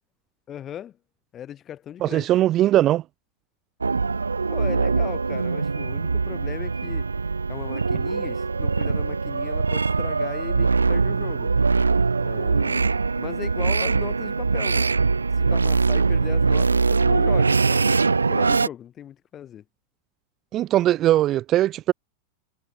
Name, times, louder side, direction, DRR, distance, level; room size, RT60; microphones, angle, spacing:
voice 1, 0.5-1.0 1.3-2.3 4.5-7.1 7.5-11.5 12.2-19.6, left 10 dB, 30° left, 3.6 m, -38 dB
voice 2, 2.0-3.0 20.5-21.9, right 13 dB, 35° right, 0.3 m, -20 dB
sound 1, 3.8-18.7, right 4 dB, 85° right, 0.8 m, -22 dB
figure-of-eight pair, 90°, 0 cm